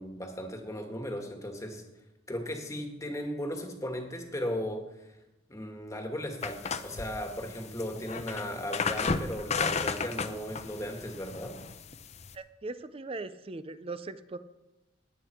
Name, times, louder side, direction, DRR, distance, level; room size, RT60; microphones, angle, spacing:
voice 1, 0.0-1.8 2.3-4.8 5.5-11.6, equal, 15° left, 4 dB, 1.6 m, -36 dB
sound 1, 6.4-12.4, left 4 dB, 35° left, 0.6 m, -34 dB
voice 2, 12.3-14.4, right 3 dB, 30° right, 13 dB, 0.5 m, -39 dB
20.0 x 8.2 x 4.4 m, 0.99 s
head